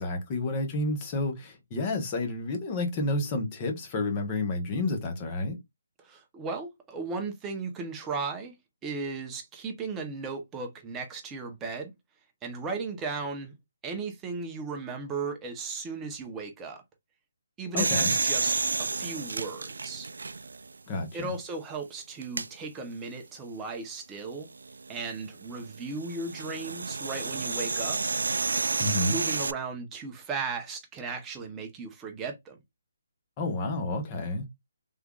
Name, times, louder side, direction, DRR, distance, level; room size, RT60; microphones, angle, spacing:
voice 1, 0.0-5.6 17.7-18.1 20.9-21.3 28.8-29.2 33.4-34.5, left 2 dB, 20° left, 0.9 m, -30 dB
voice 2, 6.0-8.5 8.8-11.9 12.4-13.5 13.8-16.8 17.6-18.5 18.8-20.1 21.1-24.5 24.9-28.0 29.0-32.6, right 4 dB, 10° right, 0.7 m, -36 dB
sound 1, 17.8-20.7 21.2-21.3 22.2-22.5 24.6-29.5, right 4 dB, 90° right, 0.3 m, -30 dB
3.5 x 3.4 x 2.3 m
hypercardioid pair, 175°, 0 cm